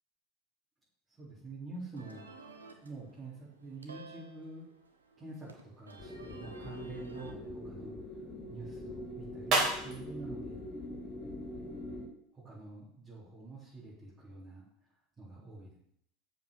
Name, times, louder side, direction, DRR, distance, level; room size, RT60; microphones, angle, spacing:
voice 1, 1.2-2.3 2.7-4.7 5.2-8.1 8.5-10.6 12.3-14.6 15.2-15.8, right 3 dB, 20° right, -9 dB, 4.3 m, -47 dB
sound 1, 2.0-7.3, right 3 dB, 85° right, 1.1 m, -53 dB
sound 2, 6.0-12.1, left 1 dB, 45° left, 3.0 m, -43 dB
sound 3, 6.3-11.8, right 2 dB, 40° right, 3.4 m, -38 dB
7.3 x 6.1 x 6.7 m, 0.71 s
hypercardioid pair, 85°, 0 cm